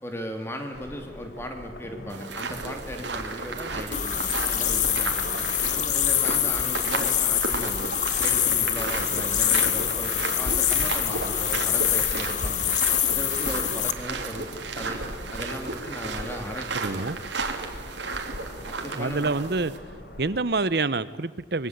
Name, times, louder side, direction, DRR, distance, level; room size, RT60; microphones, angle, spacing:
voice 1, 0.0-5.1 5.7-7.9 8.2-12.7 13.1-14.5 14.7-17.3 18.7-19.3, equal, 15° left, 4 dB, 2.9 m, -37 dB
sound 1, 0.7-20.4, equal, 65° left, 3.8 m, -42 dB
sound 2, 2.1-19.8, right 4 dB, 80° right, 2.9 m, -34 dB
sound 3, 3.9-13.9, left 10 dB, 45° left, 1.5 m, -25 dB
voice 2, 16.7-17.2 18.9-19.7 20.2-21.7, right 3 dB, 60° right, 16 dB, 0.9 m, -27 dB
25.0 x 22.5 x 8.1 m, 1.5 s
head